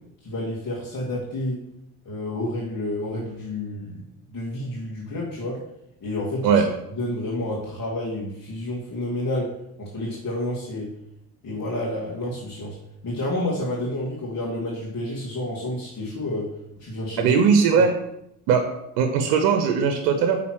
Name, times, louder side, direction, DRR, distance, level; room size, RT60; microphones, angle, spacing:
voice 1, 0.2-1.6 2.0-4.0 4.3-5.6 6.0-6.5 7.0-10.9 11.4-12.8 13.0-16.5 16.8-17.4 17.7-17.8, left 1 dB, 35° left, -6 dB, 2.2 m, -29 dB
voice 2, 17.2-17.9 18.5-18.6 19.0-20.4, right 6 dB, 85° right, 6 dB, 0.9 m, -19 dB
6.0 x 4.0 x 6.1 m, 0.79 s
supercardioid pair, 70°, 49 cm